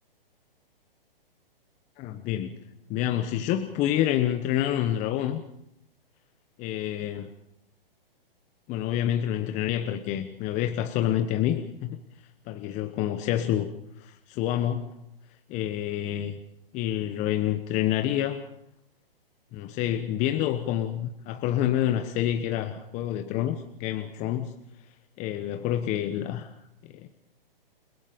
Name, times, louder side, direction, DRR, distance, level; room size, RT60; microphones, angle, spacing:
voice 1, 2.0-2.5 2.9-5.4 6.6-7.3 8.7-12.0 12.5-13.7 14.0-14.9 15.5-16.4 16.7-18.4 19.5-24.5 25.2-26.5 26.8-27.1, left 11 dB, 25° left, 7 dB, 1.1 m, -28 dB
29.5 x 18.0 x 5.3 m, 0.78 s
hypercardioid pair, 140°, 29 cm